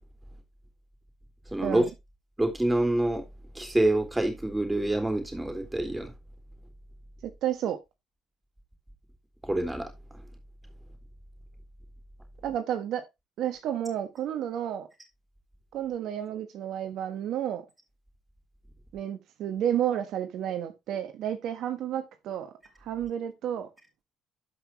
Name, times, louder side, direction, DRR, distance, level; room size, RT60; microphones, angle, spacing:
voice 1, 1.5-1.8 2.4-3.2 3.5-6.1 9.4-9.9, right 1 dB, 10° right, 3.7 m, -26 dB
voice 2, 7.2-7.8 12.4-13.0 13.4-14.9 15.7-17.6 18.9-22.5 22.8-23.7, right 10 dB, 70° right, 1.3 m, -31 dB
12.5 x 5.6 x 3.0 m
supercardioid pair, 65°, 0 cm